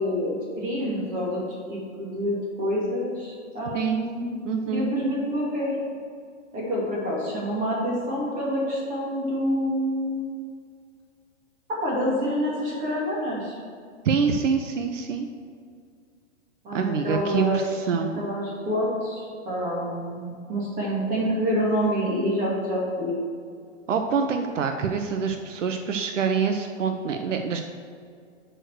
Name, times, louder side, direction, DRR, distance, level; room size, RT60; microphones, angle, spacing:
voice 1, 0.0-1.4 1.7-4.4 4.7-5.8 6.5-10.3 11.8-13.6 16.6-23.1, equal, 20° right, -4 dB, 2.3 m, -27 dB
voice 2, 4.4-4.9 14.0-15.3 16.7-18.2 23.9-27.6, right 6 dB, 75° right, 5 dB, 0.8 m, -25 dB
9.0 x 4.5 x 6.3 m, 2.2 s
hypercardioid pair, 145°, 37 cm